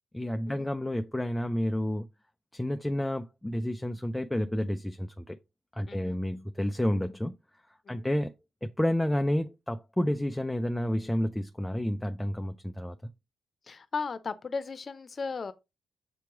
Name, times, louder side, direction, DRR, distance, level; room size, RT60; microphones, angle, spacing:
voice 1, 0.1-2.1 2.5-5.4 5.7-7.4 7.9-8.3 8.6-13.0, left 1 dB, 10° left, 0.5 m, -30 dB
voice 2, 5.9-6.2 7.9-8.1 13.7-15.5, left 5 dB, 45° left, 0.8 m, -36 dB
7.0 x 3.0 x 4.7 m
supercardioid pair, 60°, 0 cm